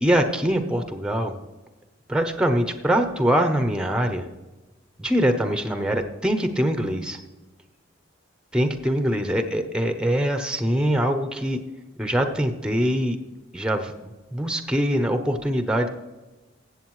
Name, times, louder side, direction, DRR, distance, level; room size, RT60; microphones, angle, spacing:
voice 1, 0.0-1.3 2.1-4.3 5.0-7.2 8.5-11.6 12.0-13.2 13.5-13.9 14.3-15.9, equal, 5° right, 7 dB, 0.7 m, -23 dB
14.5 x 8.2 x 3.1 m, 1.1 s
head